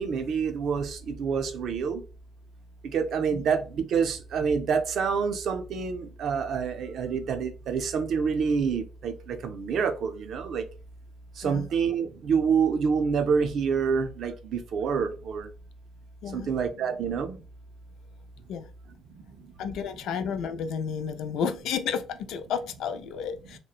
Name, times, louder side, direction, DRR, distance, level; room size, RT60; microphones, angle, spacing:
voice 1, 0.0-2.0 2.9-10.6 11.4-15.5 16.3-17.4, right 6 dB, 60° right, 0.4 m, -27 dB
voice 2, 16.2-16.5 18.5-18.7 19.6-23.6, left 7 dB, 75° left, 0.3 m, -32 dB
2.8 x 2.1 x 2.3 m
cardioid pair, 125°, 0 cm